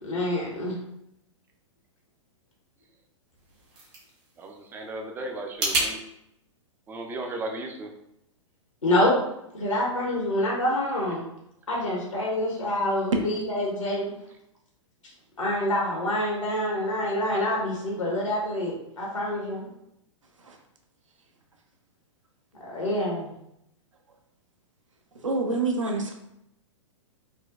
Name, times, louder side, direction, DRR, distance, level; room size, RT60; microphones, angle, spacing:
voice 1, 0.0-0.7 8.8-9.1 9.5-11.2 11.7-14.1 15.4-19.7 22.7-23.3, left 1 dB, 85° left, -3 dB, 1.0 m, -26 dB
sound 1, 3.3-5.9, right 2 dB, 60° right, 1.5 m, -31 dB
voice 2, 4.4-6.0 6.9-7.9, right 2 dB, 15° right, 2 dB, 0.3 m, -35 dB
voice 3, 25.2-26.1, right 3 dB, 80° right, 2 dB, 0.6 m, -27 dB
4.0 x 2.2 x 2.3 m, 0.80 s
figure-of-eight pair, 110°, 16 cm